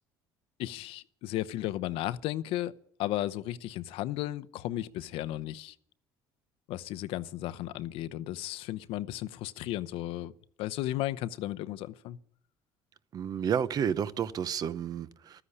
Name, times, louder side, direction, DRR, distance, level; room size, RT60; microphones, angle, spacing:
voice 1, 0.6-2.7 3.0-5.7 6.7-10.3 10.6-12.2, left 14 dB, 70° left, 0.8 m, -34 dB
voice 2, 13.1-15.4, right 8 dB, 40° right, 0.7 m, -31 dB
13.5 x 10.0 x 9.8 m
cardioid pair, 120°, 10 cm